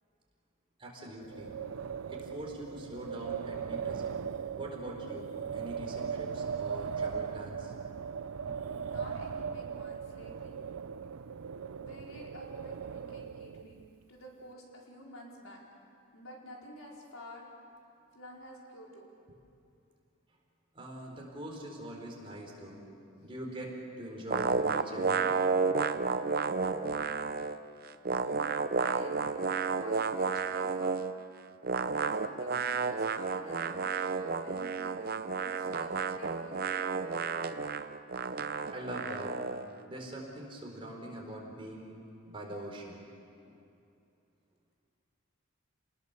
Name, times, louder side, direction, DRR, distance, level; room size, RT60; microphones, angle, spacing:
voice 1, 0.8-1.5 2.1-4.3 4.6-7.7 20.7-22.8 23.2-25.3 38.7-39.3 39.9-42.0 42.3-43.1 43.4-43.5, right 1 dB, 25° right, -1 dB, 4.1 m, -43 dB
Wind, 1.2-13.8, right 6 dB, 85° right, 0.5 m, -38 dB
voice 2, 8.4-10.6 11.8-13.8 14.1-15.6 16.1-17.5 18.1-19.1 28.2-29.2 29.6-31.0 32.1-37.0, equal, 85° left, -2 dB, 4.7 m, -50 dB
sound 1, 24.3-27.6 27.8-31.2 31.6-39.7, right 4 dB, 45° right, 0.7 m, -31 dB
29.0 x 19.5 x 6.8 m, 2.6 s
head